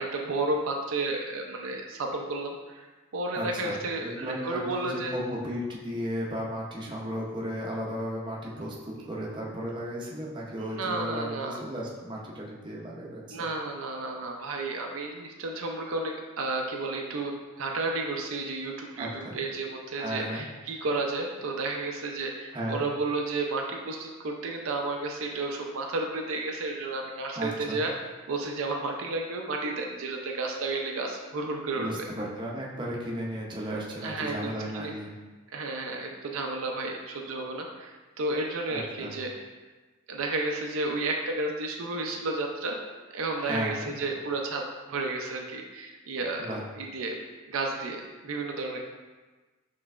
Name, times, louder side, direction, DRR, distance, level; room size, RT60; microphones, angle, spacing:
voice 1, 0.0-2.9 3.1-5.1 9.0-9.1 10.5-11.6 13.3-17.3 17.6-27.9 28.3-32.1 34.0-34.9 35.5-39.3 40.1-42.8 43.1-46.5 46.8-47.2 47.5-48.8, right 2 dB, 85° right, 2 dB, 0.5 m, -32 dB
voice 2, 3.3-13.5 19.0-19.4 19.9-20.4 22.5-22.8 27.4-27.8 31.7-35.1 38.7-39.1 43.4-43.9 46.4-46.7, equal, 25° right, -4 dB, 0.6 m, -35 dB
5.5 x 3.1 x 2.4 m, 1.3 s
head